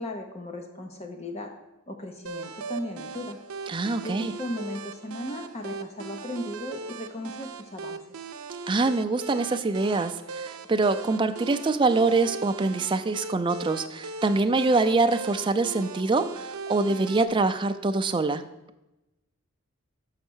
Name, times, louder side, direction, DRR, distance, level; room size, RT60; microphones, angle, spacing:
voice 1, 0.0-1.5 1.9-3.4 4.0-8.0, left 1 dB, 30° left, 4 dB, 0.7 m, -36 dB
sound 1, 2.3-17.3, right 4 dB, 90° right, 0.6 m, -39 dB
voice 2, 3.7-4.3 8.7-18.4, right 3 dB, 20° right, 8 dB, 0.4 m, -24 dB
6.4 x 5.7 x 6.2 m, 0.97 s
head